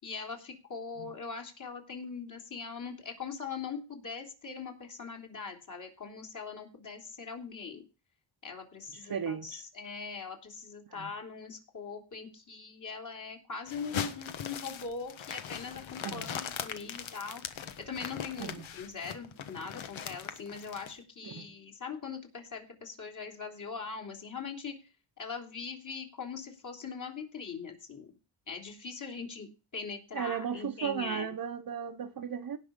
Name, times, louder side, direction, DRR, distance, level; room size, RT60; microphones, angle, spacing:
voice 1, 0.0-7.8 8.4-24.9 25.2-28.1 28.5-31.3, left 5 dB, 35° left, 3.2 m, -41 dB
voice 2, 9.1-9.6 11.0-11.1 16.0-16.3 18.4-18.7 21.2-21.5 30.1-32.6, right 8 dB, 45° right, 1.0 m, -35 dB
sound 1, 13.7-20.9, left 8 dB, 65° left, 1.4 m, -40 dB
17.5 x 5.9 x 5.2 m
wide cardioid pair, 155°, 50 cm